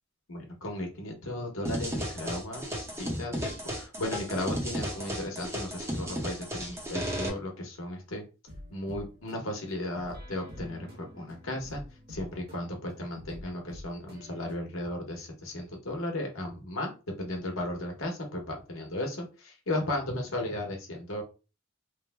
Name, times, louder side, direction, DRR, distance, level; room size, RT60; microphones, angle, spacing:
voice 1, 0.3-8.2 8.7-11.8 12.1-16.9 17.2-21.2, left 1 dB, 85° left, 2 dB, 1.0 m, -35 dB
sound 1, 1.7-7.3, equal, 15° right, 0.7 m, -34 dB
sound 2, 8.5-14.6, left 1 dB, 50° right, 1.3 m, -47 dB
3.2 x 2.1 x 3.4 m, 0.31 s
head